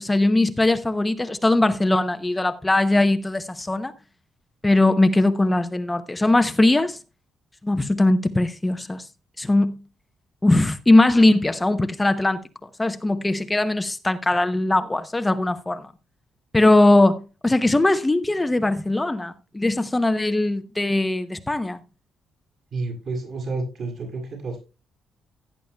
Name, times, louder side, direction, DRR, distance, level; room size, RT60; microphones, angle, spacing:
voice 1, 0.0-3.9 4.6-7.0 7.6-9.1 9.4-9.8 10.4-12.4 12.8-15.9 16.5-21.8, left 2 dB, 10° left, 0.6 m, -20 dB
voice 2, 22.7-24.6, right 3 dB, 55° right, 7.1 m, -30 dB
16.5 x 10.0 x 2.2 m
cardioid pair, 140°, 0 cm